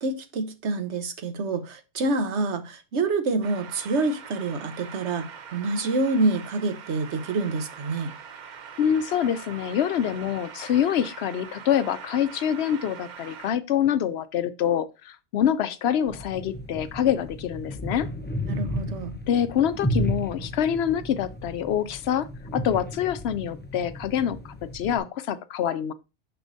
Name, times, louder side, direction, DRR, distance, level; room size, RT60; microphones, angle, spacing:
voice 1, 0.0-8.1 18.5-19.2, right 3 dB, 80° right, 1.2 m, -27 dB
sound 1, 3.4-13.5, right 7 dB, 50° right, 0.6 m, -43 dB
voice 2, 8.8-18.1 19.3-22.3 22.5-25.9, left 9 dB, 70° left, 0.8 m, -25 dB
sound 2, 16.1-25.0, equal, 10° left, 0.7 m, -33 dB
6.8 x 6.2 x 2.6 m
omnidirectional pair, 1.2 m